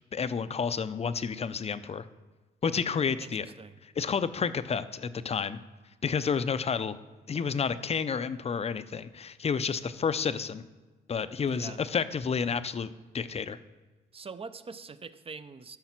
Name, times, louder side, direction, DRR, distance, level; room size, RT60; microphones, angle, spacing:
voice 1, 0.1-2.1 2.6-3.4 4.0-5.6 6.0-7.0 7.3-10.6 11.1-13.6, left 6 dB, 30° left, 13 dB, 0.6 m, -30 dB
voice 2, 3.2-3.8 11.5-11.8 14.1-15.8, right 4 dB, 30° right, 13 dB, 0.6 m, -44 dB
13.5 x 5.7 x 5.9 m, 1.3 s
cardioid pair, 90°, 20 cm